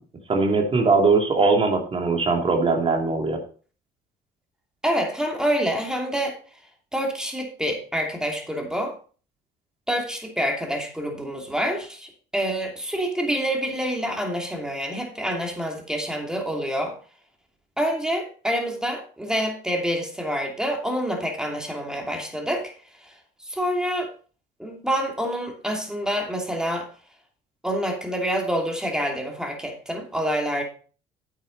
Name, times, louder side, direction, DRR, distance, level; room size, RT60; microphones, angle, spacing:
voice 1, 0.3-3.4, right 4 dB, 35° right, 3 dB, 2.6 m, -20 dB
voice 2, 4.8-6.4 6.9-8.9 9.9-16.9 17.8-22.7 23.0-23.1 23.5-24.1 24.6-26.9 27.6-30.6, equal, 5° right, 2 dB, 2.8 m, -27 dB
9.0 x 8.9 x 4.1 m, 0.39 s
cardioid pair, 110°, 17 cm